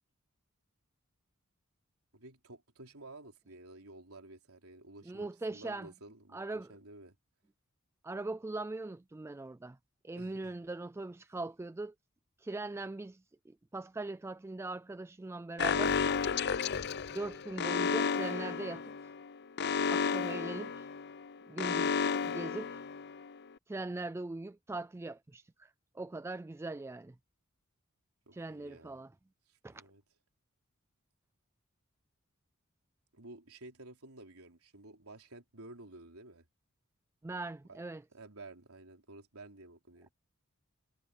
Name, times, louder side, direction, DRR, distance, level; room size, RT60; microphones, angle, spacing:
voice 1, 2.1-7.1 10.2-10.6 28.3-29.0 29.5-30.0 33.1-36.4 37.7-37.8 38.1-40.1, right 2 dB, 85° right, 3.9 m, -52 dB
voice 2, 5.1-5.9 6.3-6.7 8.0-9.8 10.0-11.9 12.4-16.0 16.9-19.1 19.9-20.9 21.5-22.8 23.7-27.1 28.3-29.1 29.6-29.8 37.2-38.0, right 2 dB, 10° right, 0.3 m, -41 dB
Alarm, 15.6-23.4, left 6 dB, 50° left, 0.6 m, -32 dB
head